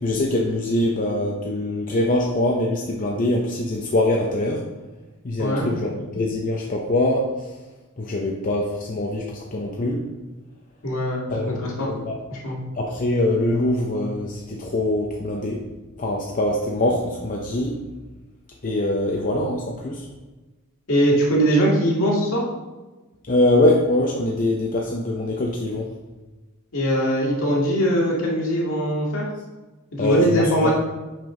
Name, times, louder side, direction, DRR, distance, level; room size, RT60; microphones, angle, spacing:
voice 1, 0.0-4.6 5.2-7.3 8.0-9.2 9.5-10.0 11.3-12.1 12.8-15.6 16.0-17.7 18.6-20.0 23.3-25.9 30.0-30.7, left 1 dB, 40° left, -1 dB, 0.7 m, -23 dB
voice 2, 5.4-5.7 10.8-11.9 12.3-12.6 20.9-22.5 26.7-29.3 29.9-30.7, equal, 65° left, -3 dB, 2.0 m, -21 dB
6.2 x 4.5 x 4.9 m, 1.2 s
head